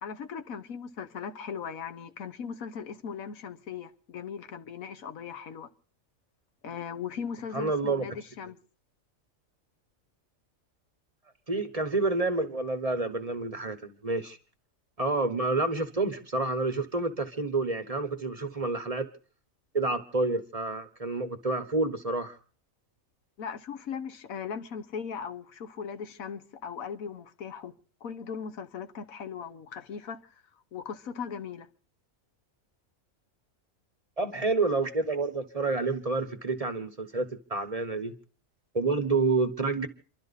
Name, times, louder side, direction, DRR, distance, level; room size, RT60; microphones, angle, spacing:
voice 1, 0.0-5.7 6.6-8.6 23.4-27.7 28.0-30.2 30.7-31.7, left 6 dB, 85° left, 1.5 m, -38 dB
voice 2, 7.5-8.1 11.5-14.4 15.0-19.1 19.7-22.4 34.2-38.1 38.7-39.9, right 3 dB, 30° right, 1.0 m, -29 dB
28.0 x 12.0 x 4.1 m
omnidirectional pair, 1.4 m